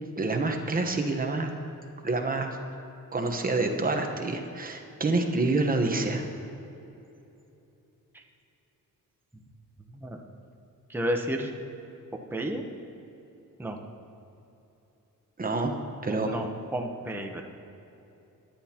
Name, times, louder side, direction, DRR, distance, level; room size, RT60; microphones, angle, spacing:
voice 1, 0.2-1.5 2.0-2.6 3.1-6.3 15.4-15.8 16.0-16.4, right 3 dB, 25° right, 3 dB, 1.1 m, -27 dB
voice 2, 10.9-11.5 12.3-12.6 13.6-13.8 16.1-17.4, right 1 dB, 5° right, 2 dB, 0.9 m, -31 dB
22.5 x 10.5 x 2.9 m, 2.9 s
wide cardioid pair, 160°, 34 cm